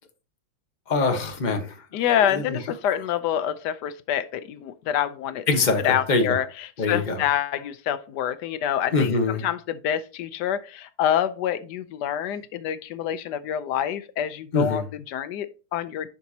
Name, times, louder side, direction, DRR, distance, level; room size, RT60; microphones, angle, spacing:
voice 1, 0.9-2.6 5.5-6.4 6.8-7.3 8.9-9.4 14.5-14.8, left 3 dB, 30° left, 1.2 m, -24 dB
voice 2, 1.9-5.4 5.8-6.4 6.9-16.1, left 10 dB, 90° left, 1.3 m, -27 dB
10.5 x 5.1 x 2.8 m
omnidirectional pair, 1.7 m